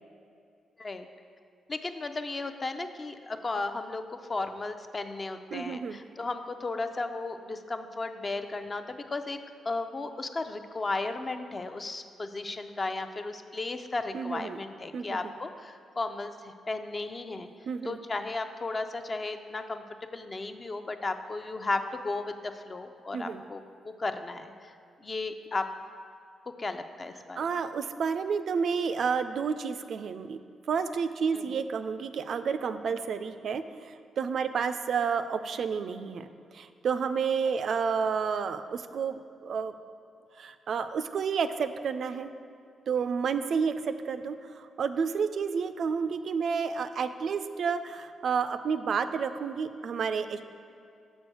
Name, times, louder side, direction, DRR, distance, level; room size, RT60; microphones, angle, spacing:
voice 1, 1.7-9.4 9.6-17.5 17.8-24.7 25.0-25.7 26.6-27.4 31.3-31.6, left 3 dB, 40° left, 7 dB, 0.5 m, -35 dB
voice 2, 5.5-6.0 14.1-14.6 14.9-15.3 17.7-18.0 23.1-23.4 27.4-30.4 30.7-39.7 40.4-42.3 42.9-50.4, right 6 dB, 65° right, 10 dB, 0.3 m, -30 dB
6.2 x 4.5 x 6.2 m, 2.4 s
supercardioid pair, 50°, 0 cm